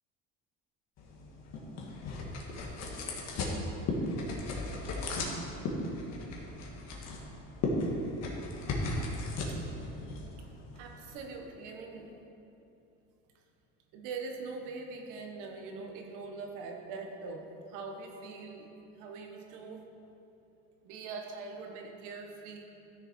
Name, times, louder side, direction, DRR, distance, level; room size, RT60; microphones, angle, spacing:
sound 1, 1.0-11.2, left 2 dB, 55° left, 1.9 m, -36 dB
voice 1, 10.7-12.1 13.9-18.7 18.9-19.8 20.8-22.8, right 4 dB, 80° right, 2 dB, 1.5 m, -42 dB
13.0 x 6.6 x 4.6 m, 2.8 s
cardioid pair, 120°, 31 cm